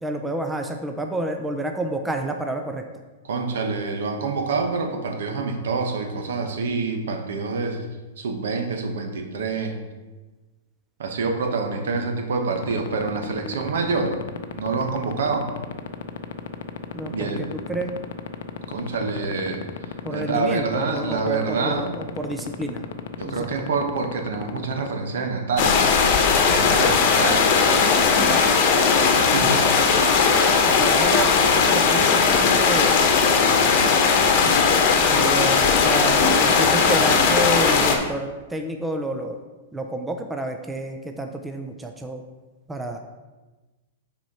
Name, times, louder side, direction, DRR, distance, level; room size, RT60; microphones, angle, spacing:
voice 1, 0.0-2.8 16.9-18.0 20.0-22.8 23.2-23.7 30.4-33.1 34.9-39.4 39.7-42.2 42.7-43.0, right 1 dB, 5° right, 4 dB, 0.4 m, -29 dB
voice 2, 3.2-7.9 8.2-9.8 11.0-14.2 14.5-15.5 17.1-17.5 18.7-19.6 20.1-21.9 23.2-25.8 26.5-27.5 28.9-29.6, right 4 dB, 80° right, 4 dB, 1.1 m, -26 dB
sound 1, 12.6-24.9, left 11 dB, 65° left, 0.6 m, -31 dB
sound 2, 25.6-38.0, left 5 dB, 40° left, 1.0 m, -18 dB
6.1 x 4.4 x 5.5 m, 1.2 s
supercardioid pair, 165°, 0 cm